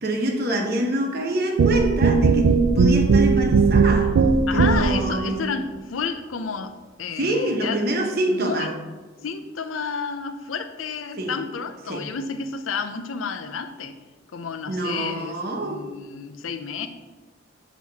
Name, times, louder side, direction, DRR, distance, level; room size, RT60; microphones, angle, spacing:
voice 1, 0.0-5.4 7.2-8.7 11.2-11.3 11.9-12.1 14.7-15.8, right 1 dB, 50° right, 2 dB, 0.9 m, -26 dB
sound 1, 1.6-5.1, right 4 dB, 70° right, 0.4 m, -18 dB
voice 2, 4.5-6.7 7.0-7.8 8.3-8.7 9.2-14.0 14.3-16.9, left 5 dB, 90° left, 8 dB, 0.6 m, -31 dB
7.4 x 3.0 x 5.7 m, 1.3 s
head